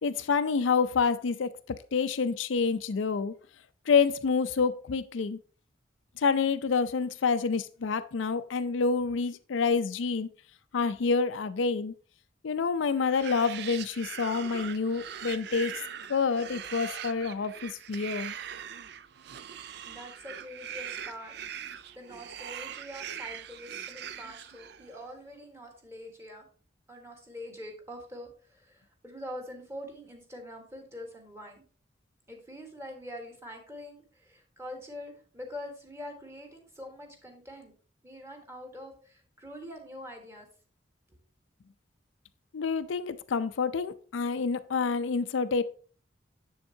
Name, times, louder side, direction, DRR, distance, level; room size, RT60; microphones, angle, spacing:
voice 1, 0.0-3.3 3.9-5.4 6.2-10.3 10.7-11.9 12.4-15.7 16.1-18.3 42.5-45.6, left 5 dB, 85° left, 0.5 m, -28 dB
sound 1, 13.0-25.0, right 9 dB, 60° right, 0.4 m, -41 dB
voice 2, 19.8-26.5 26.9-31.6 32.3-37.7 38.0-40.5 41.1-41.2, left 1 dB, 15° right, 1.5 m, -44 dB
7.2 x 7.0 x 2.8 m
head